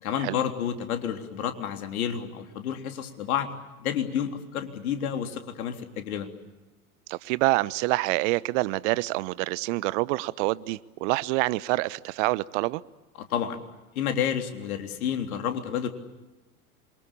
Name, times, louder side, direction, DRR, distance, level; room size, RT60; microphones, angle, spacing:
voice 1, 0.0-3.5 3.8-6.3 13.3-13.6 14.0-15.9, left 9 dB, 70° left, 6 dB, 3.7 m, -30 dB
voice 2, 7.1-12.8, right 21 dB, 55° right, 19 dB, 1.0 m, -26 dB
27.5 x 24.0 x 8.6 m, 1.1 s
hypercardioid pair, 90°, 44 cm